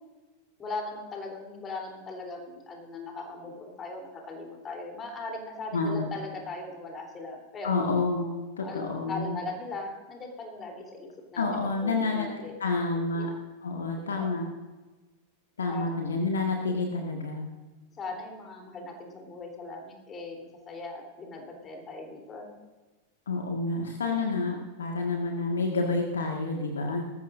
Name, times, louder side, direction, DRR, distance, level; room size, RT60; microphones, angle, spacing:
voice 1, 0.6-8.0 8.6-13.3 14.0-14.3 15.7-15.9 18.0-22.6, left 3 dB, 25° left, 1 dB, 3.4 m, -39 dB
voice 2, 5.7-6.1 7.6-9.4 11.4-12.3 12.6-13.3 13.6-14.5 15.6-17.5 23.3-27.0, left 3 dB, 70° left, 2 dB, 1.7 m, -29 dB
19.5 x 14.5 x 2.6 m, 1.2 s
figure-of-eight pair, 90°, 0 cm